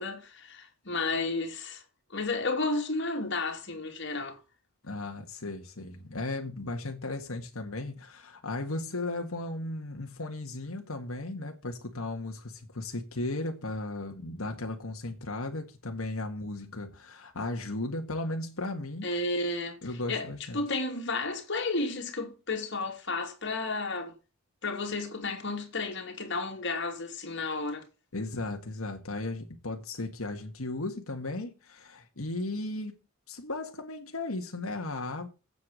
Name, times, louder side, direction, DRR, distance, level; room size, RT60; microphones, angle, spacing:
voice 1, 0.0-1.8 2.1-4.4 19.0-19.8 20.1-20.3 20.5-24.1 24.6-27.8, left 3 dB, 60° left, 2.9 m, -32 dB
voice 2, 4.8-19.1 19.8-20.6 28.1-32.9 33.3-35.3, left 2 dB, 90° left, 1.8 m, -36 dB
8.5 x 8.1 x 7.5 m
head